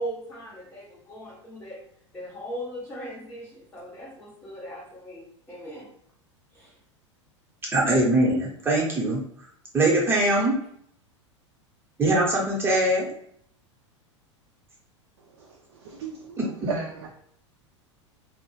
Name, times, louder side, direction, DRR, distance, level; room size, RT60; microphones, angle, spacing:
voice 1, 0.0-1.8 2.1-5.9 6.5-6.8, right 1 dB, 10° left, -6 dB, 0.5 m, -38 dB
voice 2, 7.7-9.2 9.7-10.5 12.0-13.1 16.4-16.5, right 1 dB, 15° right, -4 dB, 0.8 m, -22 dB
voice 3, 15.3-16.4 16.7-17.1, right 5 dB, 55° right, -1 dB, 0.4 m, -35 dB
2.2 x 2.0 x 3.1 m, 0.66 s
figure-of-eight pair, 85°, 16 cm